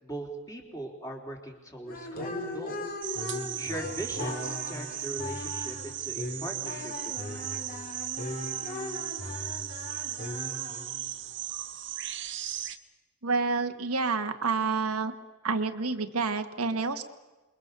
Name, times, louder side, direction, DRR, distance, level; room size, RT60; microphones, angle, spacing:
voice 1, 0.0-3.0 3.6-7.8, right 1 dB, 15° left, 1 dB, 3.9 m, -40 dB
sound 1, 1.9-11.1, left 1 dB, 40° left, 3.3 m, -38 dB
sound 2, 3.0-12.8, right 12 dB, 55° right, 1.2 m, -37 dB
voice 2, 13.2-15.1 15.4-17.0, right 4 dB, 85° right, 7 dB, 1.6 m, -28 dB
27.5 x 22.5 x 6.8 m, 1.2 s
head